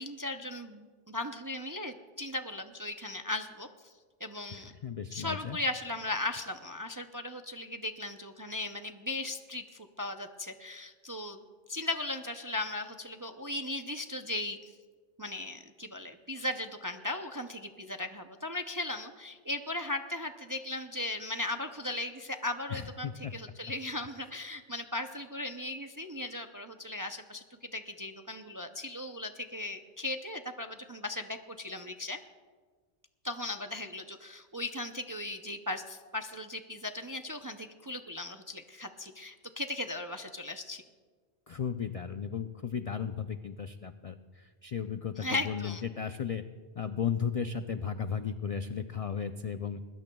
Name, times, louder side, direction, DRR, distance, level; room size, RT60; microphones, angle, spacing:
voice 1, 0.0-3.9 4.2-4.7 5.1-11.4 11.7-14.7 15.2-32.2 33.2-40.8 45.2-45.8, left 2 dB, 30° right, 6 dB, 0.4 m, -37 dB
voice 2, 4.5-5.6 22.7-23.3 41.5-46.4 46.8-49.8, left 7 dB, 55° left, 9 dB, 0.4 m, -35 dB
21.0 x 19.5 x 2.3 m, 1.5 s
omnidirectional pair, 1.2 m